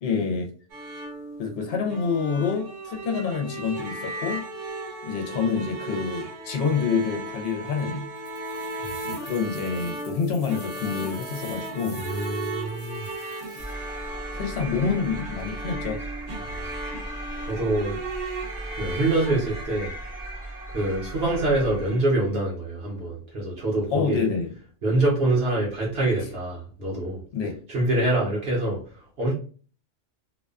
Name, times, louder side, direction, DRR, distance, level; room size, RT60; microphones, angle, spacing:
voice 1, 0.0-0.5 1.4-4.5 5.0-8.1 9.0-12.0 13.5-13.8 14.3-16.0 23.9-24.5 27.3-27.6, left 5 dB, 65° left, 3 dB, 0.8 m, -27 dB
sound 1, 0.7-19.6, right 2 dB, 90° right, 1.1 m, -36 dB
sound 2, 8.2-13.7, left 2 dB, 40° left, 0.9 m, -47 dB
voice 2, 11.9-13.1 16.4-16.8 17.4-18.0 18.8-19.9 20.7-24.3 24.8-27.2 27.7-29.3, right 2 dB, 55° right, -4 dB, 1.0 m, -25 dB
sound 3, 13.6-22.2, right 1 dB, 35° right, 0.5 m, -37 dB
2.5 x 2.3 x 2.3 m, 0.40 s
omnidirectional pair, 1.2 m